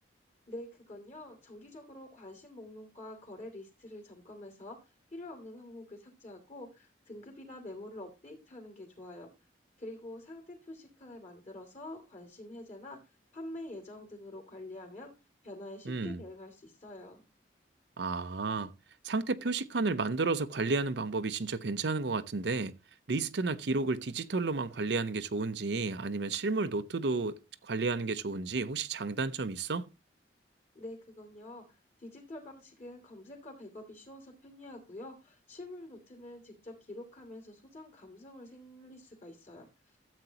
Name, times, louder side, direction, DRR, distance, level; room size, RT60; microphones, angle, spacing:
voice 1, 0.5-4.8 5.1-9.3 9.8-13.0 13.3-15.1 15.4-17.2 30.7-39.7, left 1 dB, 40° left, 2.6 m, -47 dB
voice 2, 15.9-16.2 18.0-18.7 19.0-22.7 23.1-27.3 27.6-29.9, right 3 dB, 70° right, 0.7 m, -32 dB
13.5 x 8.0 x 2.9 m
head